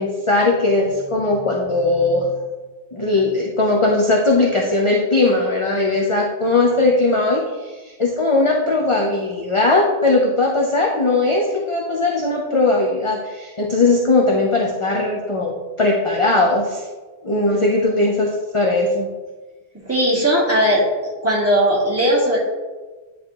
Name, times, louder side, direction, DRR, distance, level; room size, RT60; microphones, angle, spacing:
voice 1, 0.0-2.3 2.9-16.8 17.2-19.1, left 2 dB, 35° left, -2 dB, 0.7 m, -19 dB
voice 2, 19.9-22.4, equal, 15° right, -7 dB, 1.7 m, -18 dB
9.9 x 3.4 x 3.0 m, 1.3 s
omnidirectional pair, 1.1 m